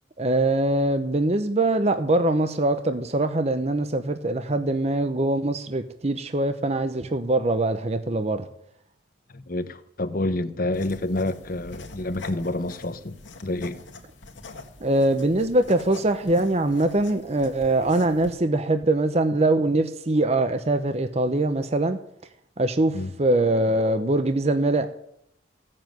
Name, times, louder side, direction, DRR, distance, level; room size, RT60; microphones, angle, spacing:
voice 1, 0.2-8.5 14.8-22.0 22.6-24.9, right 2 dB, 35° right, 0.8 m, -23 dB
voice 2, 9.3-13.2 13.4-13.8 22.9-23.1, left 2 dB, 50° left, 1.0 m, -28 dB
sound 1, 10.7-18.3, left 3 dB, 75° left, 2.1 m, -43 dB
16.5 x 7.6 x 9.2 m
head